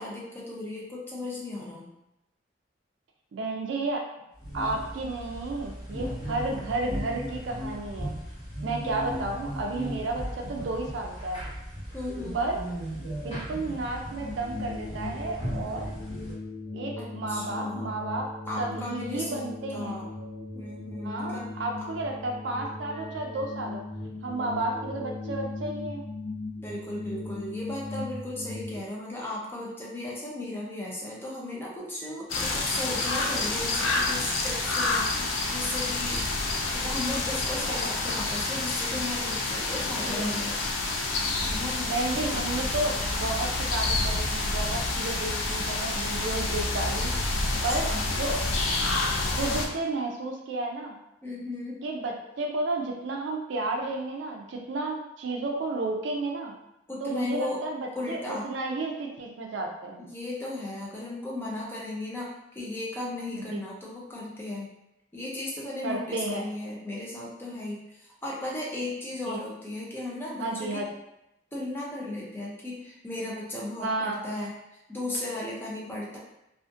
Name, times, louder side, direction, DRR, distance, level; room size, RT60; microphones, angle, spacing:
voice 1, 0.0-1.9 11.9-12.5 17.0-17.9 18.5-20.1 20.5-21.5 26.6-35.1 35.5-36.3 36.7-40.5 41.4-42.4 47.5-48.0 51.2-51.8 56.9-57.6 58.0-58.5 60.0-64.7 65.1-70.8 71.5-74.5 74.9-76.2, left 2 dB, 10° left, -4 dB, 0.5 m, -36 dB
voice 2, 3.3-4.1 4.5-8.2 8.6-11.4 12.3-12.6 13.2-15.9 16.7-18.3 18.6-20.0 21.0-26.0 40.0-40.3 41.9-42.9 43.2-48.3 49.3-50.9 51.8-56.5 57.0-58.2 58.4-60.0 63.3-63.6 65.8-66.4 69.3-69.4 70.4-70.9 73.8-74.2, right 2 dB, 70° right, 1 dB, 0.4 m, -32 dB
sound 1, 4.4-16.3, equal, 35° left, 1.3 m, -37 dB
sound 2, 13.9-28.8, left 2 dB, 65° left, 0.9 m, -38 dB
sound 3, 32.3-49.7, left 2 dB, 85° left, 0.4 m, -28 dB
2.5 x 2.4 x 2.5 m, 0.86 s
head